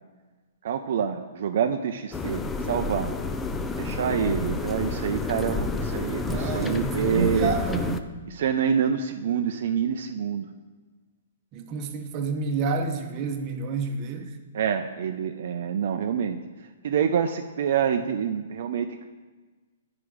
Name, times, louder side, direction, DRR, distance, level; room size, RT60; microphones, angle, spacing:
voice 1, 0.6-3.1 3.8-7.5 8.3-10.5 14.5-16.4 16.8-19.1, right 7 dB, 60° right, 6 dB, 0.5 m, -27 dB
sound 1, 2.1-8.0, left 3 dB, 15° left, 0.4 m, -30 dB
voice 2, 6.3-8.0 11.5-14.3, right 4 dB, 35° right, 5 dB, 0.9 m, -29 dB
9.4 x 4.8 x 4.9 m, 1.3 s
hypercardioid pair, 135°, 0 cm